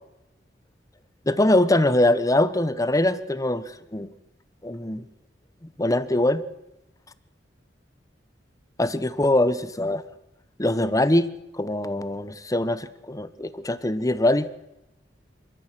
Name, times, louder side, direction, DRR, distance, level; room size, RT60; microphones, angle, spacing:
voice 1, 1.3-4.1 4.6-5.0 5.8-6.4 8.8-10.0 10.6-11.3 11.6-14.5, left 1 dB, 20° left, 14 dB, 1.1 m, -22 dB
26.5 x 14.0 x 7.7 m, 0.90 s
head